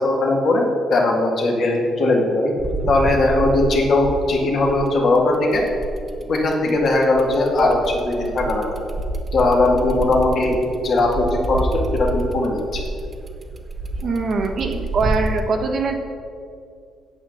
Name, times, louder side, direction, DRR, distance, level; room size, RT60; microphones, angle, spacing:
voice 1, 0.0-2.5 2.9-5.6 6.3-8.7 9.3-10.6 10.8-12.8, left 2 dB, 40° left, -1 dB, 2.0 m, -19 dB
sound 1, 2.6-5.1 5.5-15.4, right 2 dB, 20° right, 0.7 m, -28 dB
voice 2, 14.0-16.0, right 4 dB, 40° right, 3 dB, 1.1 m, -22 dB
9.0 x 7.9 x 7.7 m, 2.4 s
cardioid pair, 180°, 0 cm